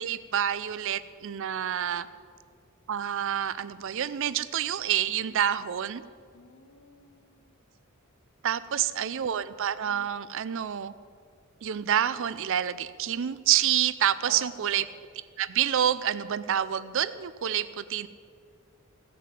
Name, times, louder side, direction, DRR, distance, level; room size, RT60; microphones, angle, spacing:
voice 1, 0.0-2.1 2.9-6.0 8.4-10.9 11.6-14.8 15.4-18.1, right 10 dB, 65° right, 16 dB, 0.4 m, -28 dB
voice 2, 6.3-7.5 8.6-9.5 14.2-14.9, left 3 dB, 70° left, 9 dB, 0.9 m, -49 dB
15.5 x 5.9 x 7.5 m, 2.1 s
head